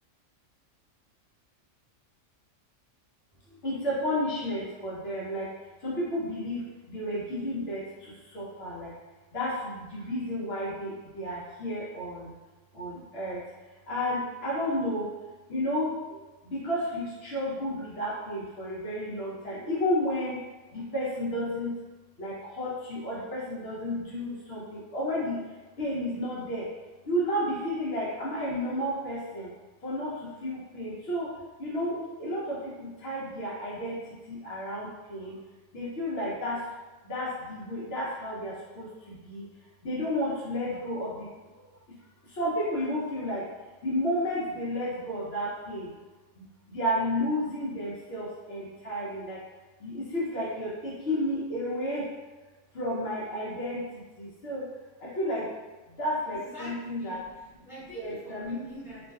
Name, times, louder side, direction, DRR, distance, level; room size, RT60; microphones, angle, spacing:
voice 1, 3.5-5.5 5.8-8.9 9.3-12.3 12.7-13.4 13.9-15.1 15.5-20.4 20.7-21.7 22.2-25.4 25.8-26.7 27.0-29.5 29.8-31.3 31.6-35.4 35.7-36.6 37.0-39.4 39.8-41.3 41.5-41.6 42.3-43.5 43.8-45.9 46.4-49.4 49.8-52.1 52.7-54.7 55.0-55.5 55.9-57.2 57.9-58.6, equal, 60° left, -7 dB, 0.8 m, -32 dB
voice 2, 56.3-59.1, equal, ahead, -14 dB, 1.3 m, -45 dB
2.4 x 2.3 x 2.2 m, 1.2 s
omnidirectional pair, 1.3 m